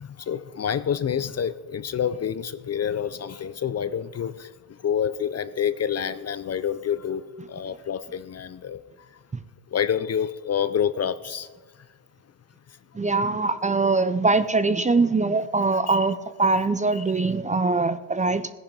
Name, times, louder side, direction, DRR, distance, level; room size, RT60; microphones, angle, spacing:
voice 1, 0.0-4.5 4.8-7.2 7.5-8.8 9.7-11.5 15.9-16.1 16.9-17.3, left 8 dB, 35° left, 14 dB, 0.5 m, -28 dB
voice 2, 12.9-18.5, right 3 dB, 15° right, 12 dB, 0.5 m, -22 dB
17.0 x 10.5 x 5.4 m, 1.4 s
cardioid pair, 120°, 44 cm